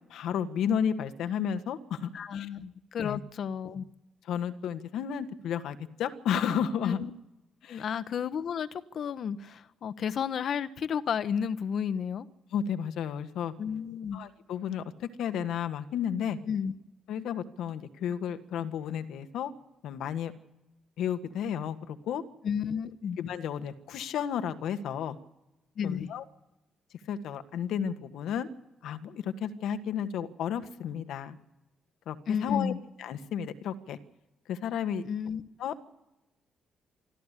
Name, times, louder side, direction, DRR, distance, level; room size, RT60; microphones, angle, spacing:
voice 1, 0.1-2.5 3.0-3.2 4.2-7.0 7.6-7.9 12.5-13.5 14.1-16.4 17.1-19.5 19.8-20.3 21.0-22.2 23.2-25.2 25.8-26.2 27.1-28.5 28.8-31.4 32.0-32.2 32.4-32.7 33.0-34.0 34.4-35.0 35.6-35.9, left 8 dB, 80° left, 1.6 m, -32 dB
voice 2, 2.1-3.8 6.8-7.1 7.7-12.3 13.6-14.2 16.5-16.7 22.4-23.2 25.8-26.1 32.3-32.8 35.0-35.4, left 7 dB, 60° left, 1.2 m, -32 dB
26.5 x 14.0 x 8.4 m
cardioid pair, 90°, 0 cm